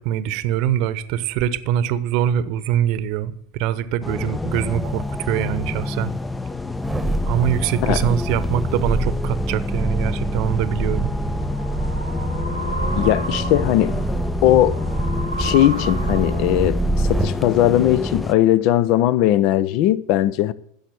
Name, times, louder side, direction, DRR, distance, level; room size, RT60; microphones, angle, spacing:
voice 1, 0.0-6.1 7.3-11.1, right 11 dB, 50° right, 0.9 m, -23 dB
sound 1, 4.0-18.3, left 3 dB, 10° left, 0.6 m, -28 dB
sound 2, 6.8-17.4 17.9-18.0, right 2 dB, 10° right, 1.2 m, -26 dB
sound 3, 11.0-16.7, right 1 dB, 90° left, 1.1 m, -33 dB
voice 2, 12.9-14.0 14.4-14.8 15.4-20.5, left 13 dB, 50° left, 0.7 m, -18 dB
14.5 x 7.2 x 7.9 m
figure-of-eight pair, 80°, 0 cm